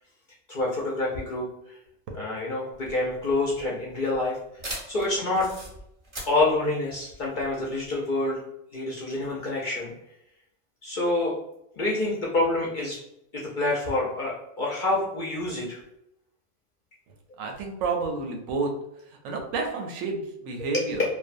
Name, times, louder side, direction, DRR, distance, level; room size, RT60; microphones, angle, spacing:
voice 1, 0.5-1.5 2.1-4.4 4.9-5.5 6.3-8.4 8.7-9.9 10.8-11.3 11.7-13.0 13.3-15.8 20.7-20.9, left 2 dB, 55° left, -4 dB, 0.5 m, -27 dB
sound 1, 2.7-7.9, right 1 dB, 30° right, 0.6 m, -41 dB
voice 2, 17.4-18.7 19.2-21.0, right 4 dB, 90° right, 3 dB, 1.0 m, -30 dB
2.5 x 2.1 x 2.5 m, 0.79 s
omnidirectional pair, 1.3 m